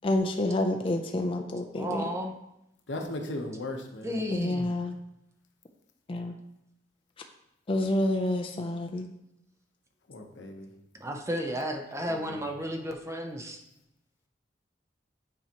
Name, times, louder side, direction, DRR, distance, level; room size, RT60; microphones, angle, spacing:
voice 1, 0.0-2.1 4.3-5.0 6.1-6.3 7.7-9.1, left 1 dB, 30° left, 3 dB, 0.4 m, -28 dB
voice 2, 1.8-2.3 4.0-4.8 11.0-13.6, equal, 15° right, 3 dB, 0.7 m, -33 dB
voice 3, 2.9-4.2 10.1-10.7 12.0-12.5, left 1 dB, 85° left, 3 dB, 0.9 m, -37 dB
8.6 x 4.5 x 2.9 m, 0.85 s
head